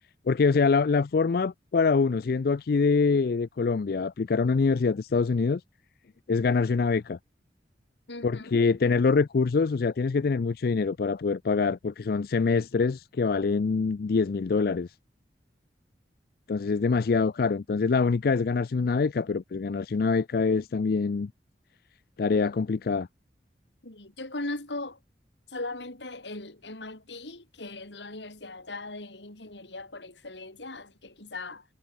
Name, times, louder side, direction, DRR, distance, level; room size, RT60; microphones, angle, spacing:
voice 1, 0.3-5.6 6.3-7.2 8.2-14.9 16.5-21.3 22.2-23.1, left 4 dB, 55° left, 0.4 m, -25 dB
voice 2, 8.1-8.6 17.4-17.5 23.8-25.0 25.5-31.7, left 2 dB, 85° left, 4.7 m, -39 dB
head